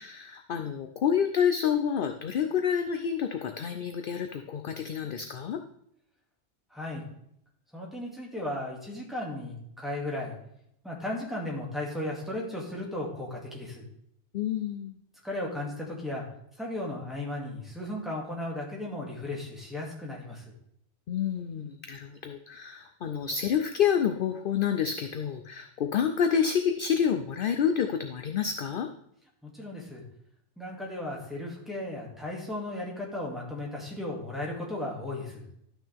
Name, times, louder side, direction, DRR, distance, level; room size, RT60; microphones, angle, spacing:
voice 1, 0.0-5.6 14.3-15.0 21.1-28.9, left 8 dB, 60° left, 6 dB, 0.6 m, -28 dB
voice 2, 6.7-7.0 7.7-10.4 10.8-13.9 15.2-16.3 16.6-20.4 29.4-30.0 30.6-35.5, left 1 dB, ahead, -4 dB, 2.2 m, -35 dB
12.5 x 6.1 x 3.5 m, 0.72 s
omnidirectional pair, 1.2 m